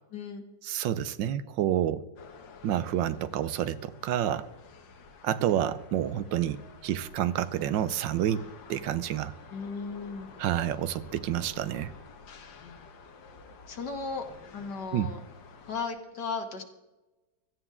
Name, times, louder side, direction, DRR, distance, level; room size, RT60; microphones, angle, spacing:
voice 1, 0.1-0.4 9.5-10.3 12.6-12.9 13.7-14.2 14.5-15.2 15.7-16.6, left 4 dB, 65° left, 4 dB, 2.0 m, -36 dB
voice 2, 0.6-2.0 2.6-4.5 5.2-9.3 10.4-11.9 14.9-15.1, right 11 dB, 90° right, 14 dB, 1.4 m, -29 dB
sound 1, 2.1-15.9, left 4 dB, 80° left, 1.9 m, -51 dB
17.0 x 13.0 x 3.7 m, 1.1 s
omnidirectional pair, 2.0 m